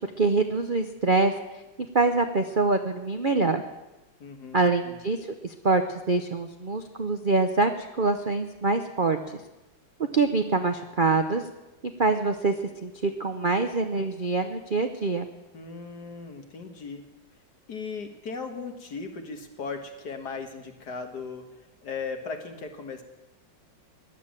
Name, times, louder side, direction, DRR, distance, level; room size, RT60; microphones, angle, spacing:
voice 1, 0.2-1.3 1.9-3.6 4.5-5.2 5.4-5.8 6.1-9.4 10.1-11.4 12.0-12.5 12.8-15.3, right 3 dB, 45° right, 6 dB, 0.6 m, -24 dB
voice 2, 4.2-5.0 15.5-17.0 17.7-21.5 21.8-23.0, left 4 dB, 60° left, 5 dB, 2.2 m, -37 dB
17.0 x 11.0 x 7.5 m, 1.0 s
omnidirectional pair, 2.1 m